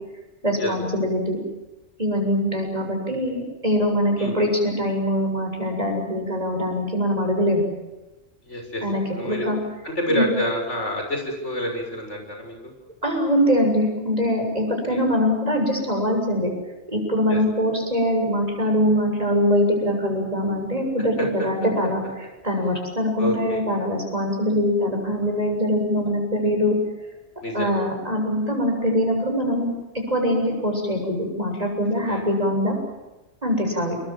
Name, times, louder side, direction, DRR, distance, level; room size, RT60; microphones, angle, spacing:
voice 1, 0.4-1.4 2.0-7.6 8.8-9.6 10.1-10.2 13.0-16.5 16.9-26.8 27.5-29.7 30.1-32.8 33.4-34.0, equal, 35° right, 2 dB, 7.4 m, -23 dB
voice 2, 8.4-8.8 9.1-9.5 9.8-12.7 14.9-15.0 17.3-17.4 23.2-23.6 27.4-27.8 32.0-32.3, equal, 85° left, 3 dB, 6.9 m, -28 dB
28.5 x 23.5 x 7.6 m, 1.1 s
omnidirectional pair, 1.2 m